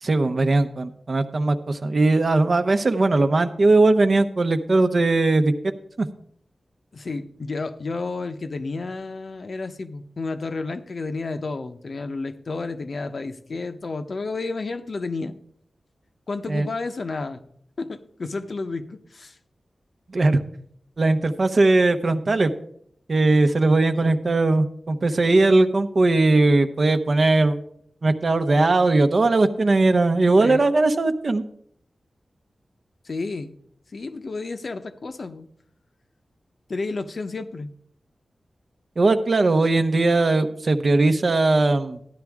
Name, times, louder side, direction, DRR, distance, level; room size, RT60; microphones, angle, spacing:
voice 1, 0.0-5.5 6.0-6.1 16.5-16.7 20.1-20.4 21.0-22.5 23.1-27.6 28.0-31.4 39.0-42.0, right 2 dB, 50° right, 9 dB, 0.8 m, -19 dB
voice 2, 6.9-15.4 16.3-17.4 17.8-19.4 24.0-24.1 30.4-30.6 33.0-33.5 33.9-35.5 36.7-37.7, left 3 dB, 60° left, 8 dB, 0.8 m, -31 dB
13.5 x 10.0 x 3.6 m, 0.67 s
wide cardioid pair, 85°, 0 cm